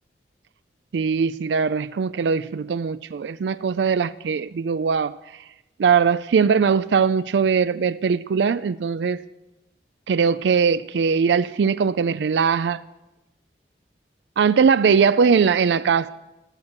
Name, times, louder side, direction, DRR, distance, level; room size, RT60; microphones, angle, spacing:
voice 1, 0.9-5.2 5.8-9.2 10.1-12.8 14.4-16.1, right 6 dB, 80° right, 14 dB, 0.4 m, -20 dB
13.0 x 8.5 x 9.7 m, 1.0 s
head